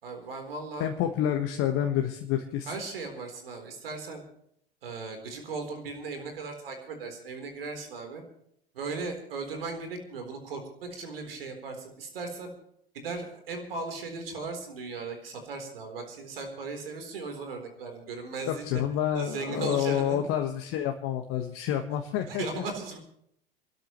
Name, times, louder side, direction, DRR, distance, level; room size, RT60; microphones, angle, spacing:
voice 1, 0.0-0.9 2.7-4.2 4.8-8.2 8.7-12.5 12.9-18.8 19.1-20.2 22.3-23.0, right 4 dB, 75° right, 5 dB, 4.0 m, -37 dB
voice 2, 0.8-2.7 18.4-22.6, left 10 dB, 50° left, 4 dB, 1.5 m, -28 dB
27.5 x 13.0 x 3.2 m, 0.70 s
figure-of-eight pair, 80°, 29 cm